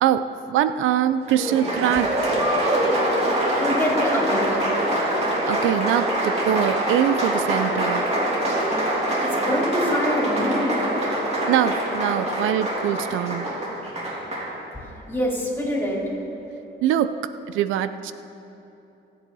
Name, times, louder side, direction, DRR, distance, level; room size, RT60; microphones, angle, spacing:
voice 1, 0.0-2.4 5.5-8.0 11.5-13.5 16.8-18.1, right 10 dB, 85° right, 12 dB, 0.5 m, -23 dB
Applause, 1.3-14.5, right 1 dB, 35° right, 3.1 m, -24 dB
voice 2, 3.5-4.6 8.8-10.8 15.1-16.0, left 1 dB, 10° left, -3 dB, 3.3 m, -25 dB
20.5 x 8.3 x 4.1 m, 2.9 s
cardioid pair, 90°, 20 cm